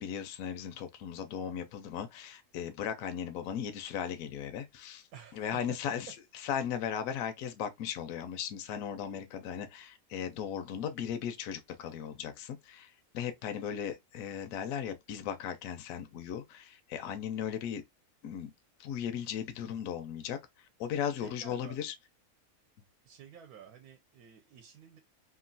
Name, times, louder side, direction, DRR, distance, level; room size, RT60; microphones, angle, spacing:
voice 1, 0.0-5.0 5.3-6.1 6.4-17.8 18.2-18.5 18.8-20.4 20.8-21.9, left 8 dB, 70° left, 1.0 m, -37 dB
voice 2, 5.1-5.8 21.2-21.8 23.0-25.0, right 8 dB, 80° right, 1.0 m, -51 dB
2.9 x 2.4 x 2.5 m
omnidirectional pair, 1.6 m